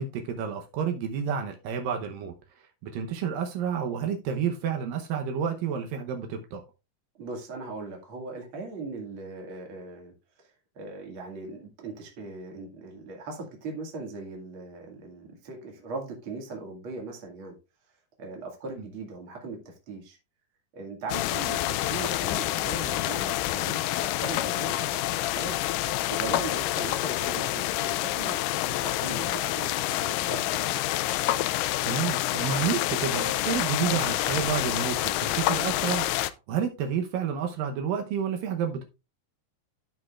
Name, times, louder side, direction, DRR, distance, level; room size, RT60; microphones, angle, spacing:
voice 1, 0.0-2.3 2.8-6.6 31.8-38.8, right 7 dB, 80° right, 2.6 m, -30 dB
voice 2, 7.2-10.1 10.4-17.6 18.2-20.2 20.7-25.6 26.1-28.4 28.7-30.8, right 3 dB, 40° right, 2.5 m, -39 dB
sound 1, 21.1-36.3, left 15 dB, 80° left, 2.0 m, -28 dB
15.0 x 5.3 x 2.4 m
omnidirectional pair, 3.9 m